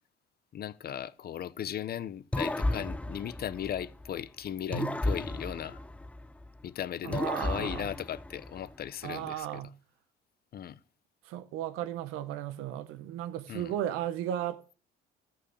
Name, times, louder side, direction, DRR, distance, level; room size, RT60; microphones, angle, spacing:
voice 1, 0.5-5.8 6.6-9.5 10.5-10.8 13.5-13.7, left 10 dB, 50° left, 0.8 m, -37 dB
sound 1, 2.3-4.2 4.7-6.6 7.1-8.8, left 1 dB, 5° left, 0.6 m, -34 dB
voice 2, 7.0-7.9 9.0-9.7 11.2-14.7, right 11 dB, 85° right, 1.0 m, -35 dB
14.0 x 5.7 x 6.6 m
cardioid pair, 105°, 21 cm